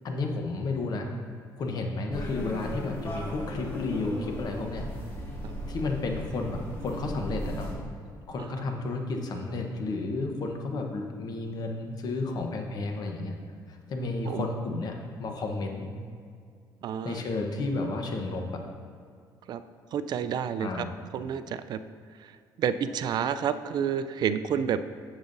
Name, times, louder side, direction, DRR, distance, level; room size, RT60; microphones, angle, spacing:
voice 1, 0.0-1.1 1.6-4.9 5.7-7.7 8.3-13.3 13.7-15.9 17.0-18.6 20.6-21.0, left 3 dB, 50° left, 3 dB, 1.0 m, -32 dB
sound 1, 2.1-7.8, equal, 30° left, 1.7 m, -36 dB
voice 2, 16.8-17.2 19.5-19.6 19.9-20.9 21.1-21.8 22.6-24.8, right 8 dB, 55° right, 12 dB, 0.3 m, -29 dB
10.5 x 7.1 x 2.6 m, 2.2 s
cardioid pair, 110°, 8 cm